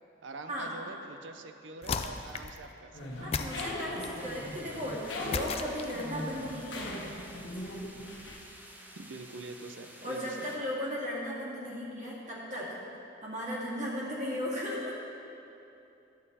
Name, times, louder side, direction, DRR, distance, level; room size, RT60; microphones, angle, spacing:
voice 1, 0.2-3.5 9.0-10.6, right 3 dB, 75° right, 8 dB, 0.6 m, -45 dB
sound 1, 1.8-2.6 3.3-4.2 5.3-6.2, left 5 dB, 30° left, 0.4 m, -35 dB
sound 2, 2.9-8.4, left 1 dB, 70° left, 1.3 m, -40 dB
voice 2, 3.2-7.1 10.0-12.8 13.2-15.0, equal, 40° right, -6 dB, 2.2 m, -36 dB
sound 3, 4.2-10.6, right 1 dB, 10° right, 0.7 m, -52 dB
11.5 x 7.5 x 4.1 m, 2.8 s
head